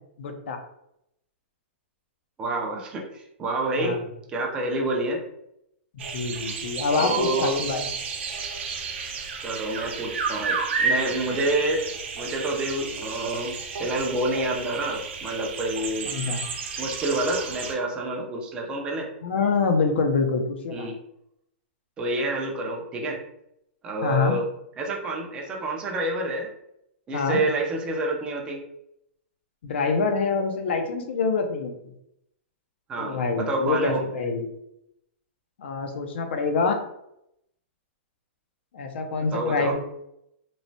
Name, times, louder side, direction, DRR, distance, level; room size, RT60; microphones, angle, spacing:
voice 1, 0.2-0.6 3.8-4.0 6.1-7.8 16.1-16.4 19.2-20.9 24.0-24.4 27.1-27.4 29.6-31.7 33.0-34.5 35.6-36.8 38.7-39.8, left 4 dB, 60° left, 5 dB, 0.5 m, -25 dB
voice 2, 2.4-4.0 4.3-5.2 7.0-7.6 9.4-11.8 12.2-16.1 16.8-19.1 20.7-21.0 22.0-23.2 23.8-24.4 24.8-26.5 27.1-28.6 32.9-34.0 39.3-39.8, right 2 dB, 15° right, 0 dB, 0.4 m, -28 dB
sound 1, 6.0-17.7, right 4 dB, 65° right, 0.7 m, -31 dB
3.0 x 2.0 x 2.6 m, 0.79 s
hypercardioid pair, 165°, 7 cm